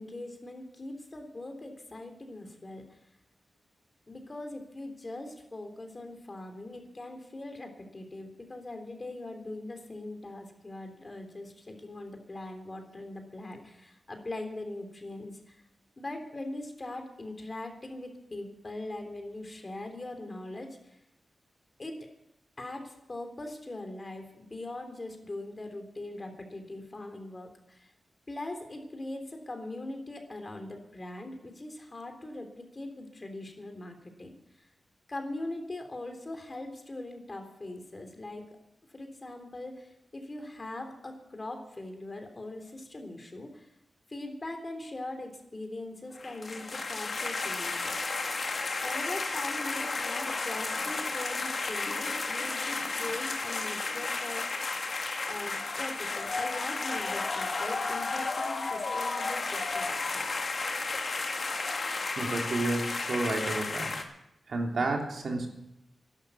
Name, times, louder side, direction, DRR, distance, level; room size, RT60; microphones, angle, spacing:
voice 1, 0.0-2.8 4.1-15.6 16.0-21.0 21.8-22.0 22.6-27.9 28.3-34.7 35.1-38.4 38.9-43.7 44.1-48.0 48.8-54.5 55.3-60.3, left 2 dB, 35° left, 5 dB, 3.3 m, -41 dB
sound 1, 46.2-64.0, left 3 dB, 55° left, 2.2 m, -33 dB
voice 2, 62.2-63.9 64.5-65.5, right 2 dB, 65° right, 1 dB, 3.2 m, -31 dB
12.0 x 11.5 x 8.4 m, 0.83 s
cardioid pair, 60°, 0 cm